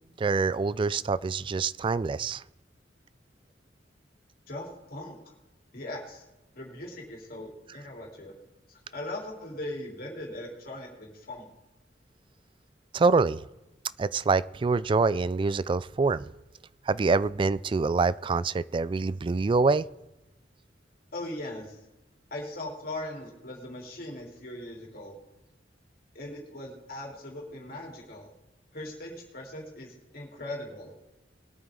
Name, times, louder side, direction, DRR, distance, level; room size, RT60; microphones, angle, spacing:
voice 1, 0.2-2.4 12.9-13.4 14.0-16.3 16.9-19.8, right 4 dB, 30° right, 0.3 m, -25 dB
voice 2, 4.5-5.3 5.7-6.2 6.5-8.4 8.7-11.5 21.1-21.8 22.3-25.2 26.1-28.3 28.7-31.0, left 1 dB, 55° left, 3.6 m, -39 dB
21.0 x 9.0 x 3.8 m
head